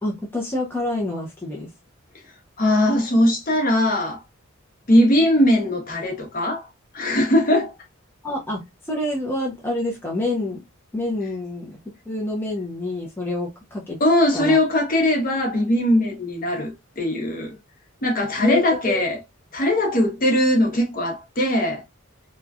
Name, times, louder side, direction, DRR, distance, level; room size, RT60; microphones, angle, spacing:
voice 1, 0.0-1.7 8.2-10.6 10.9-11.8 12.1-14.0 14.3-14.6 18.4-19.0, left 1 dB, 10° left, 0.6 m, -27 dB
voice 2, 2.6-4.2 4.9-6.7 6.9-7.7 14.0-17.5 18.0-19.2 19.5-21.8, left 1 dB, 40° left, 0.9 m, -20 dB
3.0 x 2.3 x 2.3 m
head